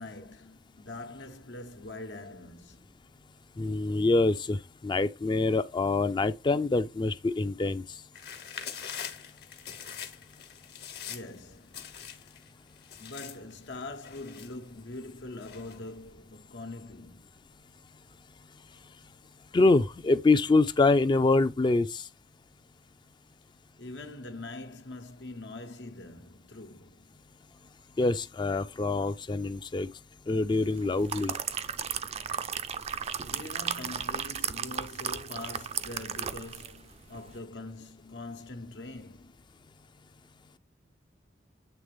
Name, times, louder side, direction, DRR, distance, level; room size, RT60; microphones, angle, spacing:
voice 1, 0.0-3.0 11.1-12.0 13.0-17.3 23.8-27.2 33.0-39.5, left 2 dB, 85° left, 1.1 m, -43 dB
voice 2, 3.6-7.8 19.5-22.0 28.0-29.9 30.3-31.3, left 3 dB, 25° left, 0.4 m, -25 dB
sound 1, 8.1-11.4 11.7-12.5 12.8-15.0 15.4-15.9, left 8 dB, 65° left, 1.2 m, -43 dB
sound 2, 30.8-36.8 37.1-37.3, right 7 dB, 35° right, 0.4 m, -35 dB
8.0 x 3.3 x 3.5 m
head